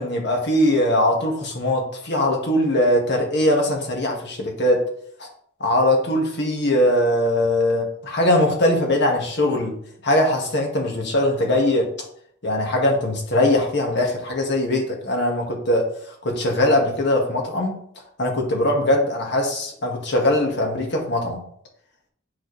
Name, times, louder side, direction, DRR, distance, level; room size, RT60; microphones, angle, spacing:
voice 1, 0.0-4.8 5.2-5.3 5.6-9.7 10.0-11.9 12.4-15.9 16.2-17.7 18.2-21.4, left 1 dB, 60° left, 1 dB, 1.8 m, -21 dB
9.6 x 4.4 x 3.3 m, 0.64 s
head